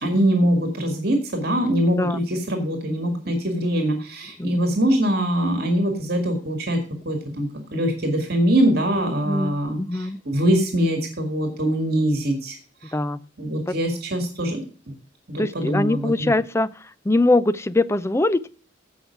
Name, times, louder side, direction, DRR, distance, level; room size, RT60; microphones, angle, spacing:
voice 1, 0.0-12.6 12.8-12.9 13.4-14.6 15.3-16.3, right 1 dB, 55° right, 4 dB, 2.2 m, -23 dB
voice 2, 9.2-10.2 12.9-13.2 13.7-13.8 15.4-18.5, left 2 dB, 15° left, 16 dB, 0.5 m, -22 dB
16.0 x 5.7 x 4.6 m, 0.40 s
head